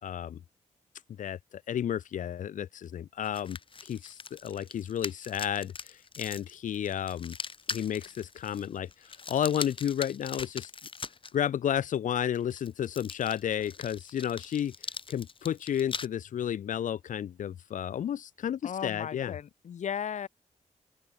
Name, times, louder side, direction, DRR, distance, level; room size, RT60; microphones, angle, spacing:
voice 1, 0.0-0.4 1.2-7.3 7.7-10.7 11.3-19.4, left 9 dB, 85° left, 1.5 m, -32 dB
sound 1, 3.2-11.3 12.3-16.1, left 5 dB, 45° left, 6.8 m, -41 dB
voice 2, 18.6-20.3, left 8 dB, 70° left, 1.9 m, -36 dB
open air
wide cardioid pair, 115°, 13 cm